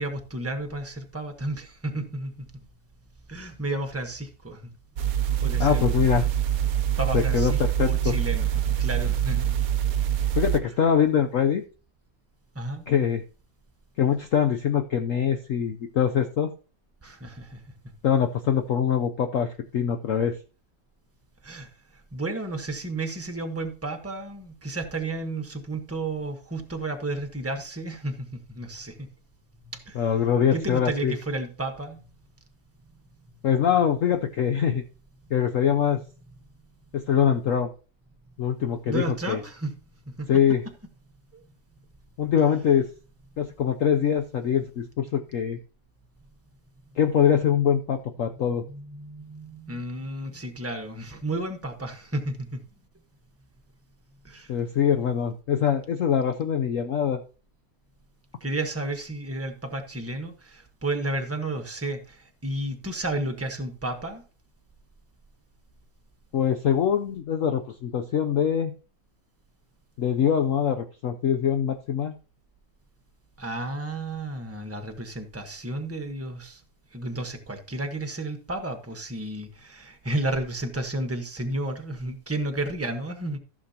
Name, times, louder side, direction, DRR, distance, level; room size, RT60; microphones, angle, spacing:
voice 1, 0.0-2.5 3.3-4.7 5.4-5.9 7.0-9.6 12.5-12.8 17.0-17.6 21.4-21.7 22.1-29.1 29.6-30.1 30.5-32.0 38.9-39.7 40.0-40.4 41.3-41.4 48.7-52.6 54.2-54.5 58.4-64.2 73.4-76.6 76.9-83.4, right 2 dB, 10° right, 1.0 m, -32 dB
sound 1, 5.0-10.6, right 10 dB, 60° right, 1.1 m, -25 dB
voice 2, 5.6-6.3 7.1-8.1 10.3-11.6 12.9-13.2 14.0-16.5 18.0-20.4 29.9-31.1 33.4-34.8 35.3-36.0 36.9-37.7 38.4-39.4 40.3-40.6 42.2-42.9 43.4-45.6 47.0-48.6 54.5-57.2 66.3-68.7 70.0-72.1, left 8 dB, 60° left, 0.9 m, -23 dB
15.0 x 7.3 x 2.9 m
omnidirectional pair, 2.0 m